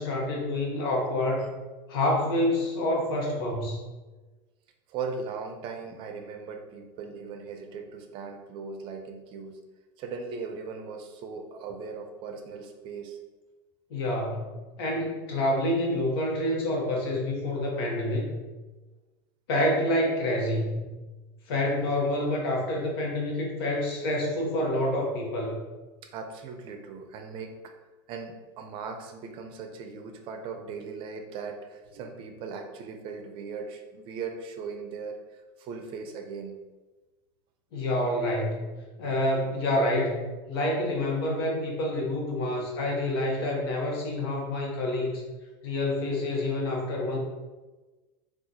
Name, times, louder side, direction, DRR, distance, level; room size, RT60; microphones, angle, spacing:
voice 1, 0.0-1.5 1.9-3.8 13.9-14.5 14.8-18.4 19.5-20.8 21.5-25.6 37.7-38.7 39.0-40.2 40.5-45.2 45.6-47.2, left 1 dB, 85° left, -1 dB, 0.9 m, -27 dB
voice 2, 4.9-9.6 10.0-13.2 26.1-27.6 28.1-36.6, right 5 dB, 45° right, 4 dB, 0.5 m, -38 dB
3.7 x 2.4 x 2.7 m, 1.2 s
supercardioid pair, 135°, 12 cm